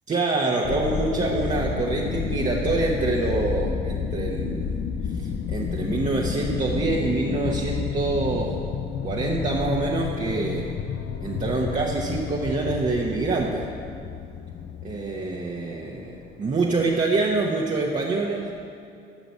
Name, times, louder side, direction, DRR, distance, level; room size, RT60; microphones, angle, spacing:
voice 1, 0.1-4.8 5.2-8.6 9.0-10.7 11.2-13.7 14.8-18.5, right 3 dB, 40° right, -3 dB, 1.3 m, -26 dB
sound 1, 0.6-18.0 18.4-18.5, left 6 dB, 75° left, 0.8 m, -31 dB
11.5 x 6.1 x 8.1 m, 2.5 s
cardioid pair, 90°, 20 cm